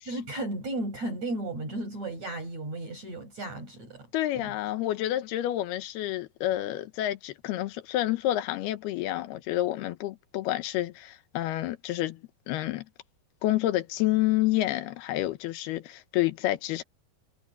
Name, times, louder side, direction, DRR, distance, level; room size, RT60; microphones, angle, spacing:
voice 1, 0.0-4.1 4.4-4.6, right 2 dB, 45° right, 9.2 m, -34 dB
voice 2, 4.1-12.2 12.5-12.8 13.4-16.8, left 14 dB, 85° left, 3.0 m, -29 dB
omnidirectional pair, 4.5 m